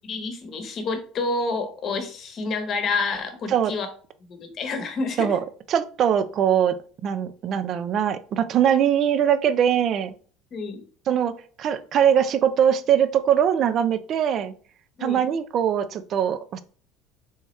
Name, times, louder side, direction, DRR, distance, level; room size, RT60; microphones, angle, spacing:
voice 1, 0.0-3.9 4.3-5.3 10.5-10.8 15.0-15.2, left 3 dB, 45° left, 6 dB, 1.0 m, -28 dB
voice 2, 5.7-6.8 7.0-10.1 11.1-14.5 15.0-16.6, right 9 dB, 50° right, 12 dB, 0.4 m, -22 dB
3.5 x 2.9 x 3.1 m, 0.42 s
supercardioid pair, 105°, 0 cm